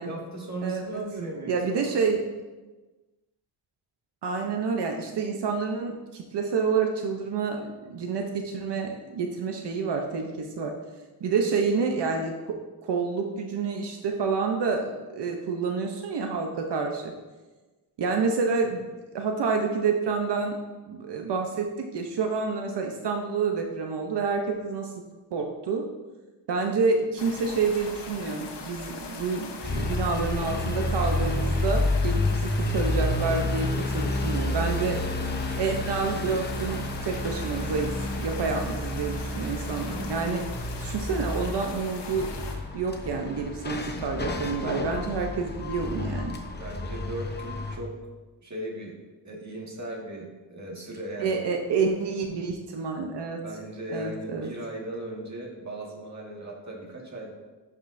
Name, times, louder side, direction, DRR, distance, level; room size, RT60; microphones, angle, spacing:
voice 1, 0.0-2.1 46.6-47.9 48.4-49.0 49.2-51.4 53.4-57.3, right 1 dB, 40° right, -1 dB, 1.8 m, -37 dB
voice 2, 0.6-1.0 1.5-2.2 4.2-10.7 11.2-12.3 12.8-17.1 18.0-18.8 19.1-20.6 20.9-24.9 25.3-25.9 26.5-35.0 35.6-40.4 40.8-42.3 42.7-46.4 51.2-53.4 53.9-54.5, right 4 dB, 80° right, 3 dB, 0.8 m, -28 dB
sound 1, 27.2-42.6, left 4 dB, 90° left, 1.0 m, -41 dB
sound 2, 29.6-47.8, left 2 dB, 25° left, 0.8 m, -30 dB
11.0 x 5.4 x 2.6 m, 1.2 s
cardioid pair, 90°, 41 cm